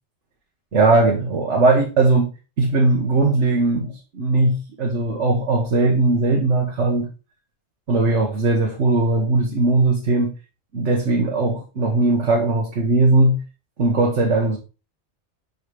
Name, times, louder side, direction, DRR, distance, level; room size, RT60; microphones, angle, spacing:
voice 1, 0.7-2.3 2.6-7.1 7.9-10.3 10.7-13.4 13.8-14.6, right 2 dB, 85° right, 1.5 m, -19 dB
7.2 x 4.1 x 4.7 m
omnidirectional pair, 1.2 m